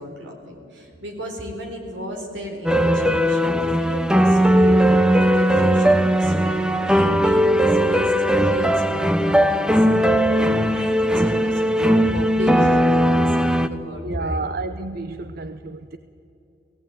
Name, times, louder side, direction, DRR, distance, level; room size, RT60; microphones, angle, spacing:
voice 1, 0.0-10.1 10.4-12.8 13.1-14.5, equal, 80° right, 2 dB, 3.9 m, -33 dB
sound 1, 2.7-13.7, equal, 5° right, 0.6 m, -18 dB
voice 2, 14.0-16.0, right 3 dB, 55° right, 11 dB, 0.6 m, -30 dB
17.5 x 17.0 x 9.2 m, 2.6 s
head